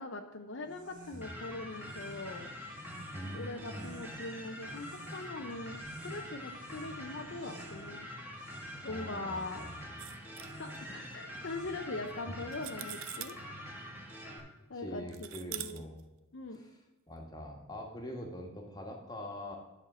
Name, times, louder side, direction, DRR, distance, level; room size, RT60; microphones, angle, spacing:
voice 1, 0.0-2.5 3.3-8.1 8.8-9.6 10.6-13.4 14.7-15.8 16.3-16.6, left 2 dB, 60° left, 5 dB, 0.7 m, -42 dB
sound 1, 0.6-12.1, equal, 40° right, 1.9 m, -54 dB
sound 2, 1.2-14.4, equal, 10° right, 1.6 m, -45 dB
voice 2, 3.1-3.9 8.9-10.0 12.2-12.4 14.7-16.0 16.5-16.8 17.1-19.6, equal, 20° left, 1 dB, 1.4 m, -44 dB
sound 3, 10.0-10.8 12.1-12.2 12.5-13.4 15.1-16.0, right 13 dB, 80° right, 0.6 m, -43 dB
12.0 x 4.4 x 6.1 m, 1.0 s
head